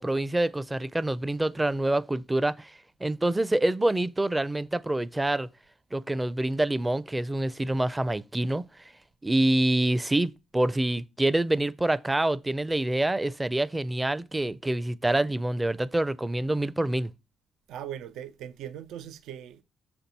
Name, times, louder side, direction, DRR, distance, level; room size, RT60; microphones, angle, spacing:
voice 1, 0.0-2.7 3.0-5.5 5.9-8.6 9.2-17.1, right 1 dB, 15° right, 0.5 m, -26 dB
voice 2, 17.7-19.6, right 10 dB, 85° right, 0.5 m, -39 dB
6.8 x 4.4 x 5.2 m
cardioid pair, 90°, 0 cm